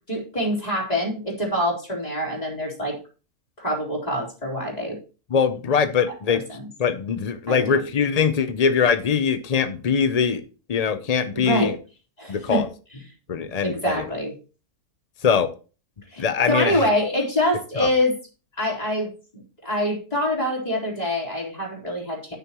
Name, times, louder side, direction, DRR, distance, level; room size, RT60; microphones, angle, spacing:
voice 1, 0.1-3.0 3.6-5.0 6.3-6.6 7.5-7.8 11.3-11.7 12.2-12.6 13.6-14.3 16.1-18.1 18.6-19.1 19.6-22.4, left 1 dB, 25° left, -2 dB, 4.0 m, -25 dB
voice 2, 5.3-6.4 6.8-10.4 10.7-11.8 12.3-12.7 13.3-14.0 15.2-15.5 16.2-16.9 17.8-17.9, left 6 dB, 65° left, 10 dB, 0.3 m, -22 dB
9.5 x 9.3 x 3.0 m, 0.35 s
omnidirectional pair, 1.7 m